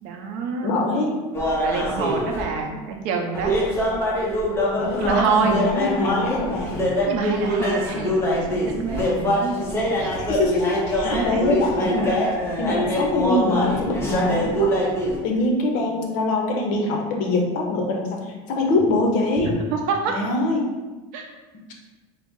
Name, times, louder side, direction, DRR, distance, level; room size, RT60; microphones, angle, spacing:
voice 1, 0.0-0.7 1.6-3.5 5.0-5.6 7.1-10.2 11.0-11.4 19.7-20.2 21.1-21.3, right 5 dB, 65° right, 2 dB, 0.6 m, -26 dB
voice 2, 0.6-1.2 2.7-2.8 4.7-6.8 10.1-12.1 12.6-14.8 15.2-19.6 20.1-20.7, left 2 dB, 60° left, 1 dB, 0.7 m, -24 dB
sound 1, 1.3-2.4 3.3-15.2, equal, 15° left, 0.7 m, -24 dB
4.0 x 2.0 x 3.5 m, 1.2 s
cardioid pair, 145°, 15 cm